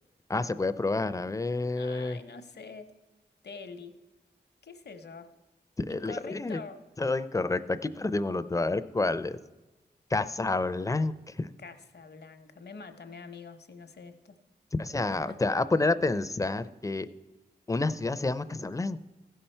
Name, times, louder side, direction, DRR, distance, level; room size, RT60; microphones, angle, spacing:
voice 1, 0.3-2.2 5.8-6.6 7.0-9.4 10.1-11.5 14.7-17.1 17.7-19.0, left 3 dB, 20° left, 13 dB, 0.5 m, -29 dB
voice 2, 1.7-2.9 3.4-4.0 4.6-5.3 5.9-6.8 11.6-14.3 15.1-15.4, left 4 dB, 70° left, 8 dB, 0.9 m, -45 dB
15.0 x 5.6 x 4.4 m, 1.1 s
cardioid pair, 45°, 18 cm